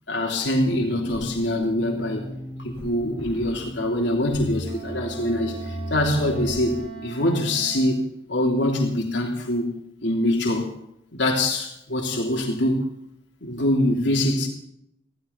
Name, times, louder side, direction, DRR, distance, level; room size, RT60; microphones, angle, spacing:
voice 1, 0.1-2.3 2.6-8.0 8.3-9.7 10.0-10.7 11.1-12.8 13.4-14.5, left 1 dB, 65° left, 0 dB, 3.3 m, -24 dB
sound 1, 0.6-6.9, equal, 15° left, 4.9 m, -36 dB
Wind instrument woodwind instrument, 4.6-8.1, right 7 dB, 30° right, 3.8 m, -39 dB
16.0 x 16.0 x 4.1 m, 0.74 s
head